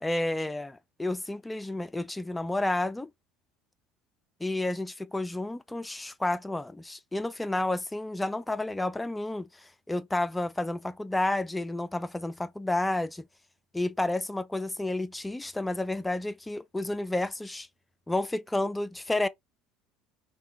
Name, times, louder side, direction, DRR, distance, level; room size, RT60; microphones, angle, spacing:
voice 1, 0.0-3.1 4.4-13.2 13.7-17.7 18.1-19.3, left 2 dB, 10° left, 0.4 m, -31 dB
3.6 x 2.2 x 2.6 m
hypercardioid pair, 70°, 0 cm